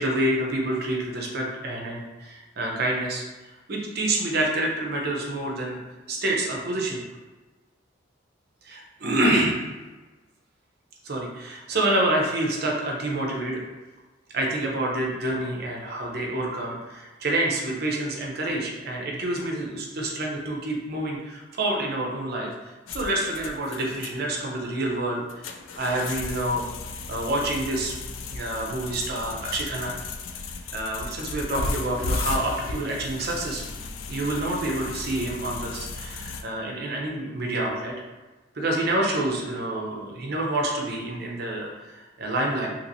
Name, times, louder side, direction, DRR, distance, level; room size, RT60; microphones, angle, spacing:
voice 1, 0.0-5.8 6.1-7.0 8.6-9.7 11.0-13.6 14.3-22.5 22.9-25.4 25.8-26.6 27.1-27.9 28.3-30.0 30.7-33.7 34.1-37.9 38.6-42.7, right 1 dB, 50° right, -1 dB, 0.6 m, -27 dB
sound 1, 22.9-36.4, left 3 dB, 75° left, 0.3 m, -35 dB
2.9 x 2.9 x 2.6 m, 1.2 s
head